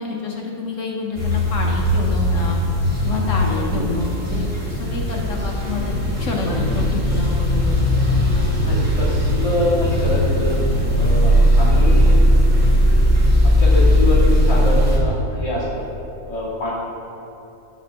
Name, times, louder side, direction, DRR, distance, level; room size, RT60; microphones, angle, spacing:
voice 1, 0.0-2.6 3.0-8.1 11.4-11.5, left 3 dB, 65° left, 0 dB, 1.3 m, -28 dB
sound 1, 1.1-15.0, equal, 10° right, 1.9 m, -18 dB
voice 2, 3.4-4.0 6.2-6.8 8.5-10.6 11.0-12.2 13.4-15.9 16.3-16.7, left 1 dB, 25° left, -9 dB, 2.5 m, -25 dB
10.5 x 4.3 x 6.7 m, 2.9 s
omnidirectional pair, 1.5 m